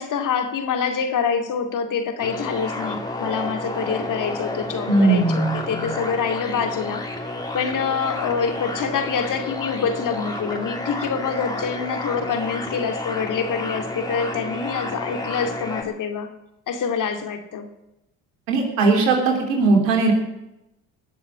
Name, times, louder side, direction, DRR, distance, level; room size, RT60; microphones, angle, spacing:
voice 1, 0.0-7.1 7.5-16.3 16.7-17.6, left 6 dB, 55° left, 6 dB, 2.3 m, -26 dB
sound 1, 2.2-15.8, left 2 dB, 10° left, 3.0 m, -31 dB
voice 2, 4.9-5.5 18.5-20.1, right 3 dB, 90° right, 2 dB, 3.4 m, -18 dB
19.5 x 7.1 x 8.5 m, 0.91 s
hypercardioid pair, 70°, 38 cm